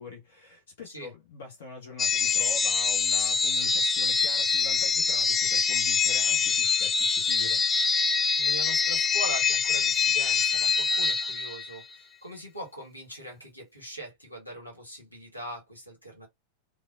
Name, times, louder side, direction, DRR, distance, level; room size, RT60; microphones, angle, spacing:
voice 1, 0.0-7.6, left 4 dB, 55° left, 0.9 m, -43 dB
sound 1, 2.0-11.8, left 5 dB, 20° left, 0.3 m, -25 dB
voice 2, 8.4-16.3, right 1 dB, 90° left, 1.3 m, -41 dB
3.3 x 2.3 x 2.4 m
figure-of-eight pair, 90°, 0 cm